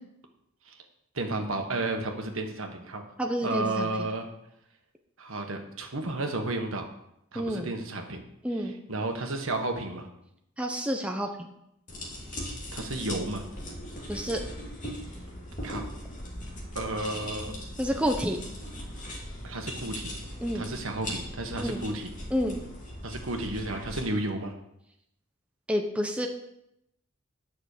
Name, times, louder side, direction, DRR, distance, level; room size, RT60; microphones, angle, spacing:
voice 1, 1.1-3.0 3.4-4.3 5.2-6.9 7.3-8.2 8.6-10.1 12.3-13.4 15.6-15.9 16.7-17.5 19.4-20.1 20.5-22.1 23.0-24.5, right 2 dB, 70° right, 4 dB, 1.6 m, -32 dB
voice 2, 3.2-4.1 7.3-7.7 8.4-8.7 10.6-11.5 14.1-14.4 17.8-18.4 20.4-20.7 21.6-21.8 22.3-22.6 25.7-26.3, equal, 5° right, 3 dB, 0.8 m, -29 dB
sound 1, 11.9-24.0, equal, 40° left, 2.7 m, -39 dB
9.9 x 6.3 x 6.7 m, 0.80 s
head